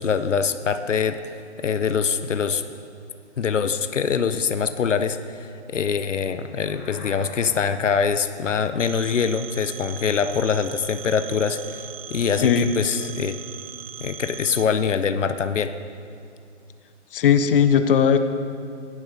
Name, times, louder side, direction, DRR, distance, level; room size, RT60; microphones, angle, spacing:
voice 1, 0.0-2.6 3.4-13.3 14.0-15.7, left 6 dB, 85° left, 10 dB, 0.6 m, -24 dB
sound 1, 6.4-8.0, left 2 dB, 10° left, 0.4 m, -42 dB
Telephone, 8.8-14.6, right 9 dB, 55° right, 0.6 m, -39 dB
voice 2, 12.4-12.7 17.1-18.2, left 7 dB, 50° left, 10 dB, 0.6 m, -17 dB
17.0 x 10.5 x 2.7 m, 2.6 s
figure-of-eight pair, 135°, 36 cm